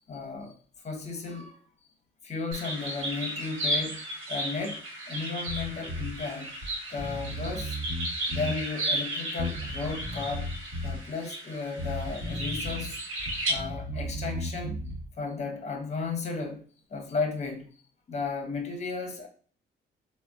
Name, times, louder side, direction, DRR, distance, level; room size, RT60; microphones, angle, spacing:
voice 1, 0.1-0.5 0.8-1.6 2.2-4.0 4.3-6.5 6.9-7.8 8.3-10.5 10.8-13.0 13.5-14.8 15.2-16.6 16.9-17.7 18.1-19.3, left 4 dB, 35° left, 0.8 m, -34 dB
sound 1, 2.5-13.5, right 1 dB, 85° right, 0.9 m, -34 dB
Bass guitar, 5.5-6.1 6.6-6.7 7.0-8.6 9.4-11.0 11.8-12.9 13.2-15.1, equal, 55° right, 1.1 m, -35 dB
3.5 x 2.1 x 2.4 m
cardioid pair, 90°, 20 cm